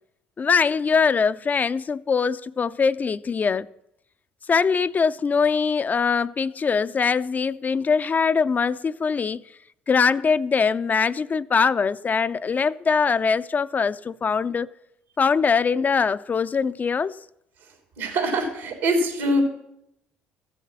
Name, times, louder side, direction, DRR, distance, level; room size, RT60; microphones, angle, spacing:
voice 1, 0.4-3.7 4.5-9.4 9.9-14.7 15.2-17.2, left 5 dB, 35° left, 0.4 m, -22 dB
voice 2, 18.0-19.4, right 1 dB, 80° right, 3.2 m, -23 dB
14.0 x 7.0 x 7.3 m
hypercardioid pair, 65°, 5 cm